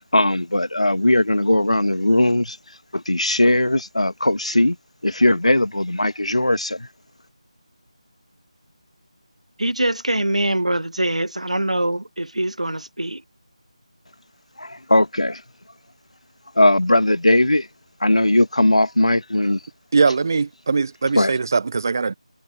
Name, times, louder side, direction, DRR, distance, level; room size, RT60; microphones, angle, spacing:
voice 1, 0.1-2.6 2.9-4.8 5.0-6.9 14.6-15.4 16.6-17.7 18.0-19.6 21.2-21.3, left 1 dB, 70° left, 2.1 m, -18 dB
voice 2, 9.6-13.2, right 1 dB, 75° right, 1.1 m, -23 dB
voice 3, 19.9-22.1, right 4 dB, 30° right, 0.9 m, -21 dB
figure-of-eight pair, 160°, 4 cm